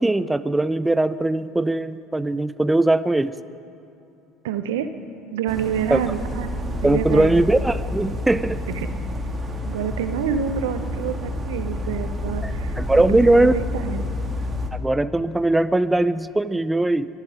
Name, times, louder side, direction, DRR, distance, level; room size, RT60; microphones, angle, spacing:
voice 1, 0.0-3.3 5.9-6.0 6.8-8.6 12.4-13.5 14.7-17.1, right 2 dB, 10° right, 14 dB, 0.5 m, -20 dB
voice 2, 4.4-4.9 5.3-6.5 6.8-7.3 8.7-8.9 9.7-14.1, right 8 dB, 80° right, 10 dB, 0.8 m, -28 dB
sound 1, 5.5-14.7, left 1 dB, 30° right, 1.8 m, -29 dB
23.5 x 9.8 x 5.0 m, 2.6 s
hypercardioid pair, 70°, 0 cm